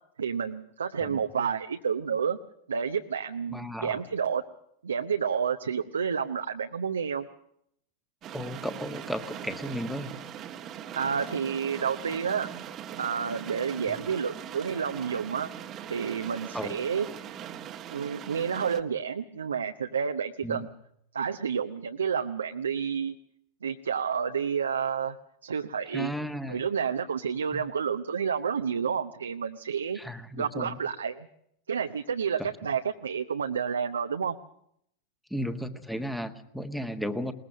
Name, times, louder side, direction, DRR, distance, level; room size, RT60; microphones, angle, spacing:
voice 1, 0.2-2.4 2.7-4.4 4.8-7.3 10.9-12.5 13.0-15.5 15.9-17.1 17.9-20.7 21.1-23.2 23.6-25.2 25.4-26.1 26.5-30.0 30.4-31.3 31.7-34.4, right 7 dB, 70° right, 7 dB, 0.8 m, -30 dB
voice 2, 3.5-4.0 8.3-10.2 13.8-14.1 16.5-16.8 20.4-20.7 25.9-26.6 27.5-27.6 29.9-30.8 32.4-32.5 35.3-37.3, equal, ahead, 9 dB, 1.5 m, -34 dB
sound 1, 8.2-18.8, right 9 dB, 30° right, 1.3 m, -41 dB
21.5 x 20.0 x 6.4 m, 0.72 s
figure-of-eight pair, 90°, 0 cm